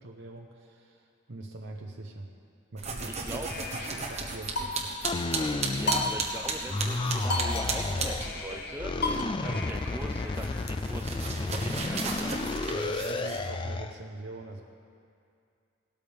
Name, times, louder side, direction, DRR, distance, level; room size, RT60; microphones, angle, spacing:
voice 1, 0.0-2.3 2.7-4.9 12.7-14.6, right 2 dB, 60° right, 0 dB, 0.8 m, -42 dB
sound 1, 2.8-8.6 8.9-13.5, right 4 dB, 30° right, 1.2 m, -36 dB
voice 2, 3.1-3.5 5.4-12.4, right 1 dB, 10° right, 4 dB, 0.7 m, -41 dB
sound 2, 3.5-5.1 5.9-6.7 7.0-7.1 7.3-10.7, left 2 dB, 50° left, 1.0 m, -35 dB
sound 3, 5.0-6.4 6.7-8.3 8.8-14.0, left 2 dB, 25° left, 0.3 m, -32 dB
18.0 x 13.0 x 3.5 m, 2.4 s
head